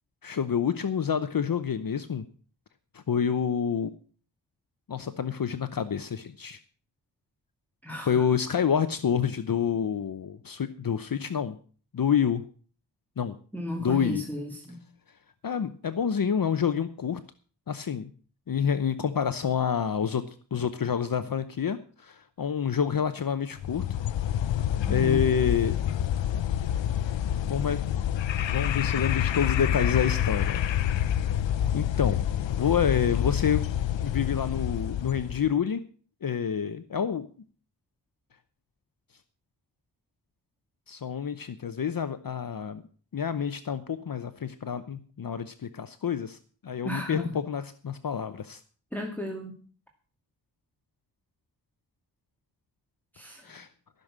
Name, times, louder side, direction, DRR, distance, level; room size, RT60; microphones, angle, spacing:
voice 1, 0.2-2.2 2.9-3.9 4.9-6.6 8.1-11.6 11.9-12.4 13.2-13.3 13.8-14.2 15.4-17.2 17.7-18.1 18.5-23.8 24.9-25.8 27.5-27.8 28.5-30.6 31.2-31.3 31.7-32.2 32.6-33.7 34.0-35.8 36.2-37.3 40.9-42.8 43.1-46.4 46.6-48.6 53.4-53.7, left 7 dB, 50° left, 11 dB, 0.8 m, -28 dB
voice 2, 13.5-14.8 24.9-25.3 46.8-47.4 48.9-49.6 53.1-53.6, left 1 dB, 5° left, 1 dB, 2.0 m, -34 dB
sound 1, 23.6-35.5, left 10 dB, 85° left, 0.7 m, -27 dB
14.5 x 6.7 x 7.3 m, 0.43 s
wide cardioid pair, 100°, 43 cm